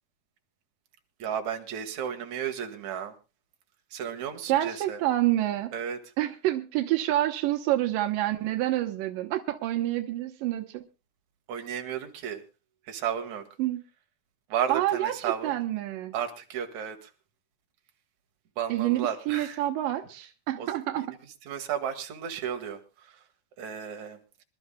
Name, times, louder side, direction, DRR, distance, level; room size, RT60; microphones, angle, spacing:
voice 1, 1.2-3.1 3.9-5.0 5.7-6.0 11.5-12.4 12.9-13.4 14.5-15.6 16.1-17.1 18.6-19.6 20.6-20.7 21.5-22.8 23.6-24.2, right 8 dB, 65° right, 2.9 m, -33 dB
voice 2, 4.5-5.7 6.2-10.8 13.6-13.8 14.7-16.1 18.7-21.2, right 14 dB, 85° right, 2.6 m, -28 dB
26.0 x 12.5 x 2.2 m
omnidirectional pair, 3.8 m